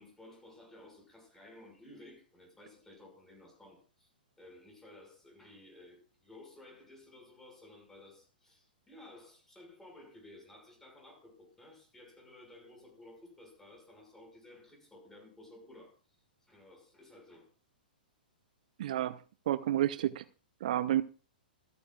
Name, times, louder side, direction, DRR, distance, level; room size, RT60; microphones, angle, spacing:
voice 1, 0.0-4.1 4.4-15.9 16.5-17.5, left 1 dB, 10° left, 5.9 m, -55 dB
voice 2, 18.8-19.2 19.5-20.2 20.6-21.0, right 12 dB, 55° right, 0.6 m, -30 dB
26.5 x 9.6 x 2.4 m
figure-of-eight pair, 110°, 5 cm